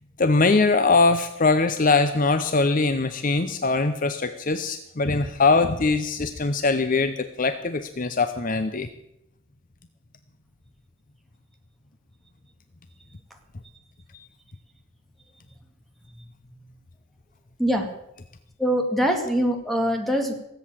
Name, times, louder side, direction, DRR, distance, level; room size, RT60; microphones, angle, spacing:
voice 1, 0.2-8.9 14.1-14.3, left 3 dB, 40° left, 10 dB, 0.7 m, -22 dB
voice 2, 18.6-20.3, equal, ahead, 3 dB, 2.2 m, -23 dB
18.0 x 8.0 x 8.8 m, 0.84 s
head